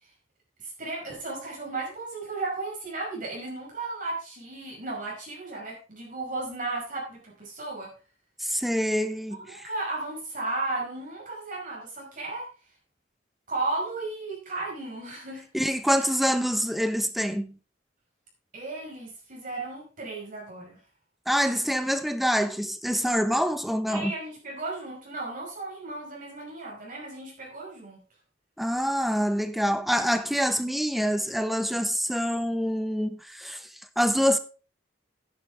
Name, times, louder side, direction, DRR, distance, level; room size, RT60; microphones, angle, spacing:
voice 1, 0.6-7.9 9.5-12.5 13.5-15.5 15.9-16.1 18.5-20.8 23.9-28.0, right 2 dB, 50° right, 5.2 m, -35 dB
voice 2, 8.4-9.6 15.5-17.6 21.3-24.1 28.6-33.7 34.0-34.4, equal, ahead, 1.0 m, -26 dB
11.0 x 10.5 x 3.5 m
head